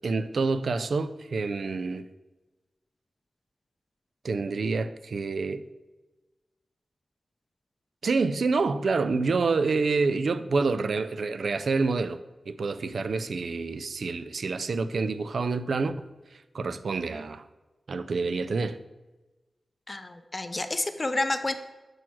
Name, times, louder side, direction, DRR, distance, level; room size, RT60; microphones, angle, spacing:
voice 1, 0.0-2.1 4.2-5.7 8.0-12.2 12.5-17.4 17.9-18.8, right 4 dB, 70° right, 0.3 m, -27 dB
voice 2, 19.9-21.5, left 2 dB, 30° left, 0.5 m, -29 dB
6.1 x 4.6 x 6.1 m
wide cardioid pair, 80°, 0 cm